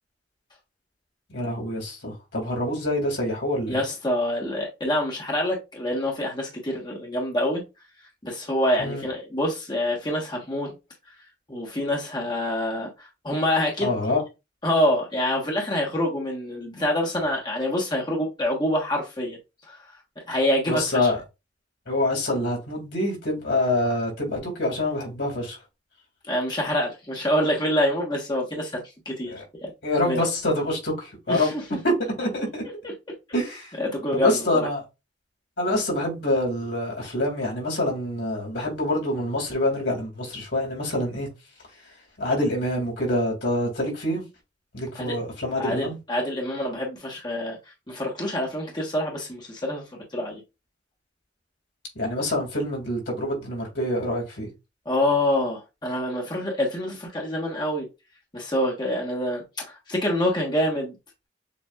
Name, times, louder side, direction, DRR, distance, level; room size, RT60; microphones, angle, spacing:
voice 1, 1.3-3.8 8.8-9.0 13.8-14.2 20.7-21.2 21.9-25.6 29.3-29.4 29.8-31.5 31.8-32.6 33.3-33.7 34.1-34.8 35.6-41.3 42.2-44.2 44.7-46.0 52.0-54.5, left 1 dB, 85° left, 2.5 m, -26 dB
voice 2, 3.7-7.6 8.2-10.7 11.5-13.9 14.6-19.4 19.7-19.8 20.3-21.1 26.3-28.8 29.0-29.3 29.6-29.7 30.1-30.3 31.3-31.6 33.8-34.7 45.0-45.2 45.6-47.6 47.9-50.4 54.8-57.9 58.3-61.0, left 1 dB, 25° left, 1.2 m, -26 dB
6.9 x 2.6 x 2.4 m
head